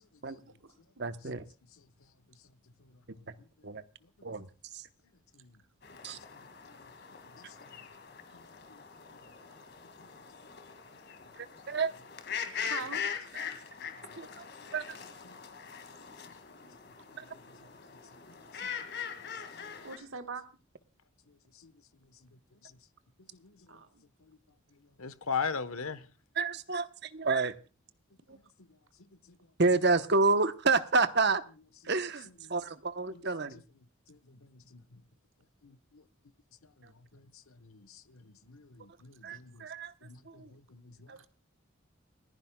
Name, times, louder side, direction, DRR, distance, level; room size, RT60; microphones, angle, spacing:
voice 1, 1.0-1.4 3.6-3.8 4.2-4.9 6.0-6.2 11.7-11.9 14.2-14.4 14.7-15.0 17.2-17.3 26.3-27.5 28.3-28.4 29.6-31.4 31.8-33.6 36.8-36.9 39.2-39.9 40.3-40.5 41.1-41.2, right 3 dB, 50° right, 1.0 m, -29 dB
sound 1, 5.8-20.0, left 7 dB, 50° left, 2.1 m, -42 dB
voice 2, 12.6-13.0 19.8-20.4 23.7-24.0 39.3-39.4 41.2-41.3, right 5 dB, 70° right, 1.5 m, -42 dB
voice 3, 25.0-26.0 28.3-28.4 33.1-33.2 34.1-34.8 35.6-36.0 37.1-39.6 40.0-41.3, left 5 dB, 80° left, 1.2 m, -40 dB
29.0 x 10.5 x 2.3 m
head